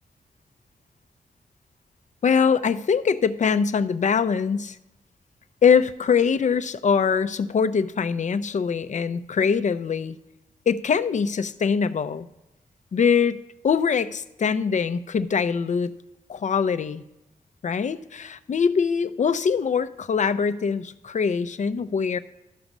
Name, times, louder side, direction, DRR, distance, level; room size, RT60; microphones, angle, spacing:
voice 1, 2.2-4.8 5.6-10.2 10.7-12.3 12.9-13.4 13.6-15.9 16.3-17.0 17.6-22.2, left 6 dB, 55° left, 13 dB, 0.7 m, -23 dB
12.5 x 5.9 x 5.4 m, 0.91 s
supercardioid pair, 45°, 15 cm